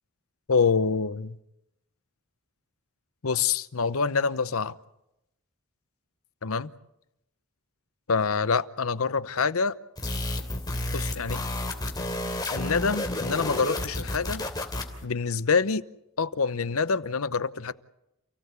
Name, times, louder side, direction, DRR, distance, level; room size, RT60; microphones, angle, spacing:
voice 1, 0.5-1.4 3.2-4.7 6.4-6.7 8.1-9.7 10.9-11.4 12.5-14.4 15.0-15.8 16.2-17.7, left 5 dB, 80° left, 0.8 m, -26 dB
sound 1, 10.0-15.0, left 1 dB, 20° left, 3.0 m, -31 dB
29.0 x 17.0 x 8.2 m
head